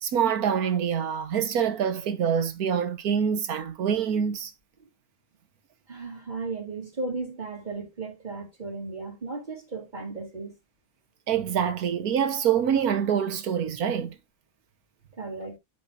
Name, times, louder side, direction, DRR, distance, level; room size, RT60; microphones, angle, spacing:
voice 1, 0.0-4.5 11.3-14.2, right 8 dB, 90° right, 1.6 m, -25 dB
voice 2, 5.9-10.5 15.2-15.6, right 3 dB, 30° right, 3.6 m, -35 dB
12.5 x 5.1 x 2.6 m
omnidirectional pair, 1.5 m